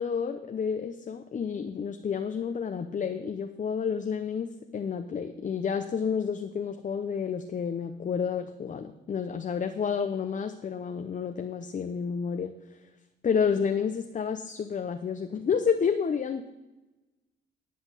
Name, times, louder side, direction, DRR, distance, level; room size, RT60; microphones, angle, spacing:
voice 1, 0.0-12.5 13.2-16.5, left 6 dB, 40° left, 6 dB, 0.8 m, -30 dB
10.5 x 6.0 x 7.5 m, 1.0 s
cardioid pair, 90°, 20 cm